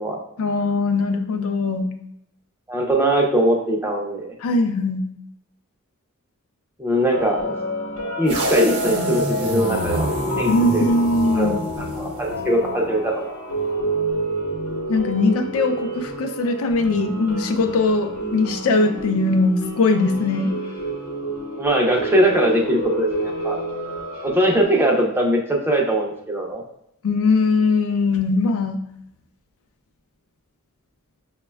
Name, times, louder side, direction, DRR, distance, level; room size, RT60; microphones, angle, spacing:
voice 1, 0.4-1.9 4.4-5.1 10.5-11.6 14.9-20.5 27.0-28.8, left 3 dB, 65° left, 6 dB, 0.4 m, -20 dB
voice 2, 2.7-4.3 6.8-7.5 8.2-10.1 10.4-10.9 11.3-13.3 21.6-23.6 24.2-26.6, right 1 dB, 10° right, 0 dB, 0.5 m, -21 dB
sound 1, 7.1-24.6, right 1 dB, 85° left, 0.8 m, -28 dB
sound 2, 8.3-12.6, right 1 dB, 50° right, 0.7 m, -27 dB
5.9 x 2.2 x 2.2 m, 0.78 s
head